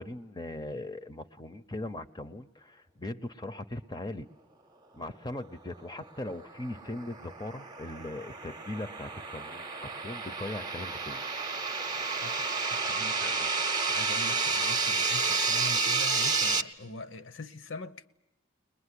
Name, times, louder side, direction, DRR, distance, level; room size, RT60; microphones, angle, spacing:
voice 1, 0.0-4.3 4.9-11.2 12.9-13.0 13.3-13.5, left 1 dB, 20° left, 0.8 m, -39 dB
sound 1, 6.2-16.6, right 4 dB, 20° right, 0.9 m, -30 dB
voice 2, 12.2-13.4 13.9-18.1, left 3 dB, 70° left, 1.0 m, -43 dB
22.0 x 21.0 x 10.0 m
head